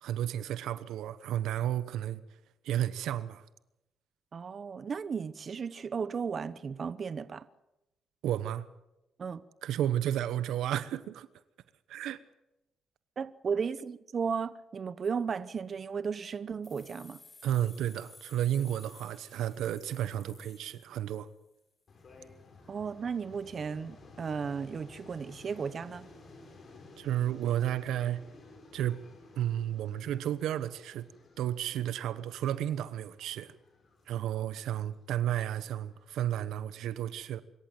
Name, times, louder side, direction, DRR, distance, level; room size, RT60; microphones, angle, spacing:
voice 1, 0.0-2.2 2.6-3.4 8.2-8.7 9.6-11.3 11.9-12.2 17.4-21.3 27.0-28.2 28.7-29.0 29.4-31.1 31.4-33.5 34.1-37.4, right 11 dB, 80° right, 1.0 m, -32 dB
voice 2, 4.3-7.5 9.2-9.4 13.2-17.2 22.7-26.1, right 6 dB, 45° right, 0.9 m, -35 dB
sound 1, 16.6-21.4, left 2 dB, 25° left, 4.0 m, -55 dB
sound 2, 21.9-36.5, left 3 dB, 45° left, 6.5 m, -55 dB
25.0 x 14.0 x 7.8 m
cardioid pair, 90°, 0 cm